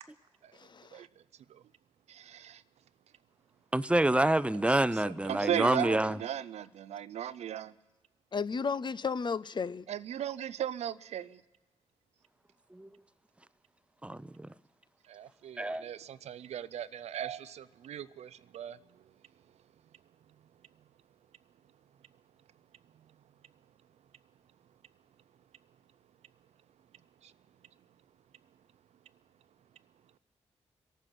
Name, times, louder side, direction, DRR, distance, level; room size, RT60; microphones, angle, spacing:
voice 1, 0.5-1.0 8.3-9.8, left 5 dB, 40° left, 0.5 m, -34 dB
voice 2, 2.1-2.6 5.0-7.7 9.9-11.4 15.1-19.0 27.2-27.3, right 10 dB, 70° right, 0.4 m, -37 dB
voice 3, 3.7-6.2 12.7-12.9 14.0-14.5 15.6-15.8, right 1 dB, 10° right, 0.6 m, -27 dB
27.0 x 9.0 x 6.0 m
supercardioid pair, 50°, 12 cm